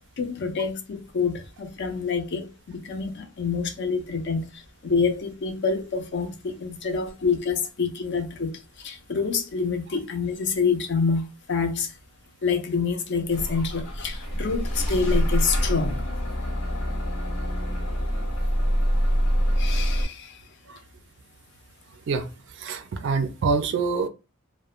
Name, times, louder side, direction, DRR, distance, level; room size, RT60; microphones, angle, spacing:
voice 1, 0.2-11.9 12.4-16.0 19.6-20.4, left 5 dB, 55° left, 0.5 m, -27 dB
Bus / Engine starting, 13.3-20.0, equal, 85° left, 1.1 m, -25 dB
voice 2, 22.1-24.1, right 4 dB, 60° right, 0.3 m, -26 dB
2.4 x 2.0 x 2.9 m
head